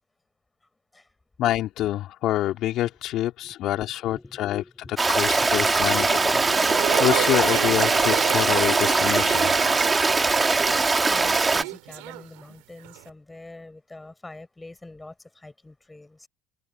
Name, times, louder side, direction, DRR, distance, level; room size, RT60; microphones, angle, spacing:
voice 1, 1.4-9.5, left 13 dB, 60° left, 2.1 m, -27 dB
voice 2, 3.4-5.0 5.4-5.7 9.5-9.8 10.1-10.3 10.6-16.3, left 2 dB, 15° left, 5.8 m, -44 dB
Stream, 5.0-11.6, right 3 dB, 20° right, 2.1 m, -21 dB
sound 1, 6.3-12.6 12.8-13.1, right 25 dB, 75° right, 2.3 m, -32 dB
open air
hypercardioid pair, 75°, 0 cm